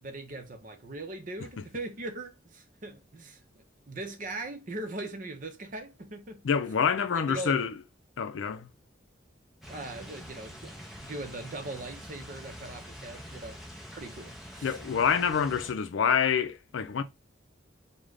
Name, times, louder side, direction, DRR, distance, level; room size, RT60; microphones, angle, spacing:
voice 1, 0.0-3.4 3.9-6.4 7.1-7.6 9.7-13.6 14.0-14.8, right 2 dB, 45° right, 0.7 m, -40 dB
voice 2, 6.4-7.7 8.2-8.7 14.6-17.0, left 7 dB, 85° left, 0.4 m, -27 dB
sound 1, 9.6-15.7, equal, ahead, 0.6 m, -45 dB
3.2 x 2.2 x 3.7 m
head